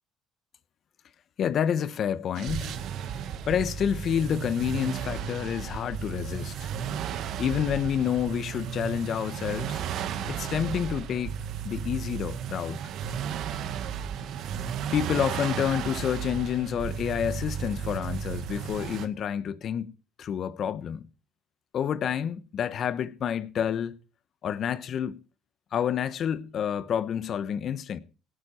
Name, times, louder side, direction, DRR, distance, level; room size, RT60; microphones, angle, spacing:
voice 1, 1.4-2.8 3.5-6.7 7.4-9.8 10.3-11.3 11.6-12.8 14.9-19.9 20.2-21.1 21.7-23.9 24.4-25.2 25.7-28.0, left 9 dB, 55° left, 1.2 m, -29 dB
sound 1, 2.3-19.1, right 8 dB, 65° right, 1.7 m, -34 dB
18.0 x 12.0 x 4.4 m
hypercardioid pair, 60°, 0 cm